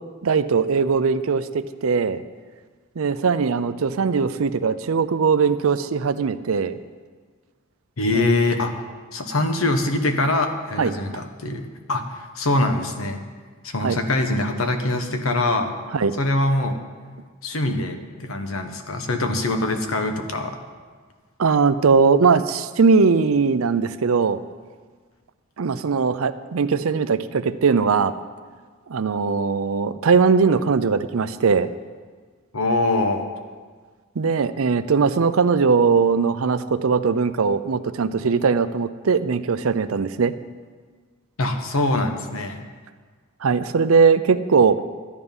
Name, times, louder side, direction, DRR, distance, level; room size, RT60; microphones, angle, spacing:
voice 1, 0.2-2.2 3.0-6.8 8.1-8.3 10.8-11.2 13.8-14.0 15.9-16.2 21.4-24.4 25.6-28.1 28.9-31.7 34.2-40.3 43.4-44.8, right 5 dB, 80° right, 13 dB, 0.5 m, -20 dB
voice 2, 8.0-8.7 9.1-13.2 13.6-15.7 16.2-16.8 17.4-20.6 32.5-33.3 41.4-42.6, left 2 dB, 75° left, 6 dB, 1.2 m, -23 dB
12.5 x 9.8 x 5.4 m, 1.5 s
head